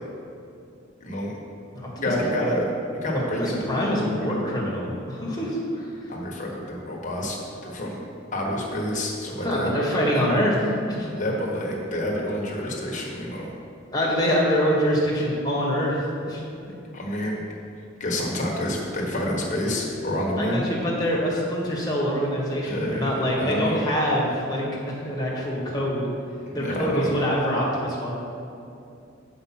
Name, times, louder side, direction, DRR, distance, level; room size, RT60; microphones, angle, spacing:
voice 1, 1.0-1.4 2.0-2.7 3.0-3.9 6.1-8.0 8.3-9.7 10.1-10.2 11.1-13.5 16.9-17.4 18.0-20.6 22.7-23.9 26.6-27.1, left 1 dB, 40° left, -2 dB, 1.4 m, -28 dB
voice 2, 1.7-2.1 3.4-6.1 9.4-10.5 10.8-11.4 13.9-16.4 20.4-26.1 26.5-28.1, equal, 20° left, -4 dB, 1.6 m, -25 dB
7.1 x 5.2 x 5.9 m, 2.6 s
head